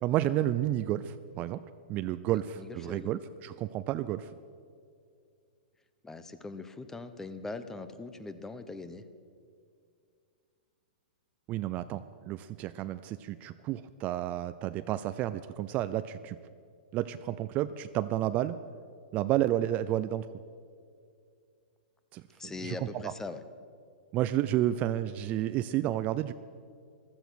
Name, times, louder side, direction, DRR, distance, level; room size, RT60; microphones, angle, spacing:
voice 1, 0.0-1.6 1.9-4.3 11.5-16.4 16.9-18.6 19.1-20.3 22.1-22.8 23.0-23.1 24.1-26.3, right 13 dB, 30° right, 12 dB, 0.4 m, -31 dB
voice 2, 2.3-3.2 6.0-9.0 22.4-23.4, left 3 dB, 10° left, 11 dB, 0.8 m, -41 dB
15.0 x 13.0 x 6.3 m, 2.3 s
hypercardioid pair, 140°, 5 cm